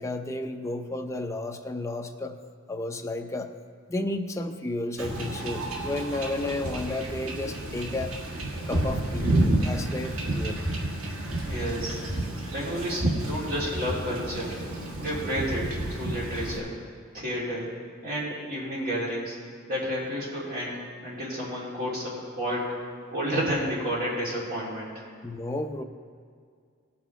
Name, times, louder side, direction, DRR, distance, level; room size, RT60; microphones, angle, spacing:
voice 1, 0.0-2.4 2.7-3.5 3.9-8.1 8.7-10.6 25.2-25.8, left 2 dB, 15° left, 4 dB, 0.6 m, -32 dB
Wind / Ocean / Boat Water vehicle, 5.0-16.6, right 1 dB, 85° right, 1.7 m, -30 dB
voice 2, 11.4-12.0 12.5-14.6 14.9-16.7 17.1-17.7 18.0-19.4 19.7-24.9, equal, 50° right, -6 dB, 3.5 m, -31 dB
18.0 x 6.1 x 4.6 m, 2.1 s
head